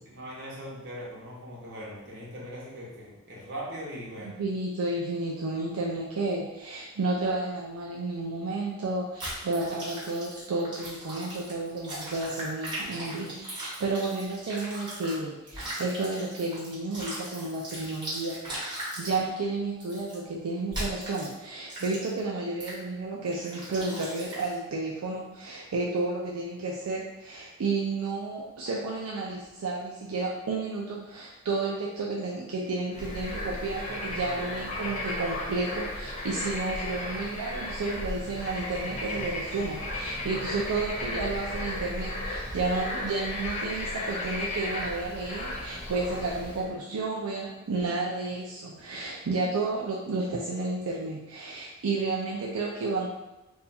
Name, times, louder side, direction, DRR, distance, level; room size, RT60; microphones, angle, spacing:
voice 1, 0.0-4.4, equal, 55° right, -5 dB, 1.0 m, -40 dB
voice 2, 4.2-53.1, right 3 dB, 80° right, -3 dB, 0.4 m, -32 dB
sound 1, 9.2-15.2 15.5-19.2 19.8-20.2 20.7-21.3 21.7-22.2 22.6-22.8 23.3-24.6, right 1 dB, 20° right, 1.2 m, -38 dB
Bird / Frog, 32.9-46.7, left 1 dB, 30° left, 0.6 m, -35 dB
2.7 x 2.3 x 4.1 m, 1.0 s
head